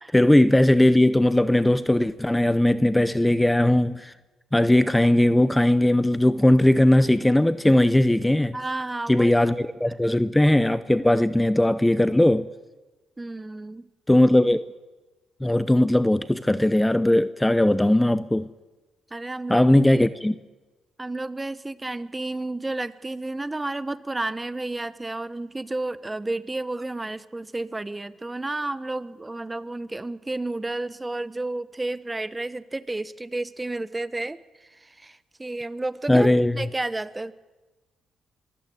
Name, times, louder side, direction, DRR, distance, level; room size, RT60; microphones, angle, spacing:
voice 1, 0.1-4.1 4.5-8.6 9.1-12.5 14.1-14.6 15.4-18.5 19.5-20.4 36.1-36.5, left 1 dB, 10° left, 0.8 m, -19 dB
voice 2, 8.5-9.3 9.8-10.2 13.2-13.9 19.1-20.0 21.0-36.3 36.5-37.3, right 2 dB, 15° right, 1.0 m, -31 dB
24.0 x 16.0 x 9.8 m
cardioid pair, 90°, 0 cm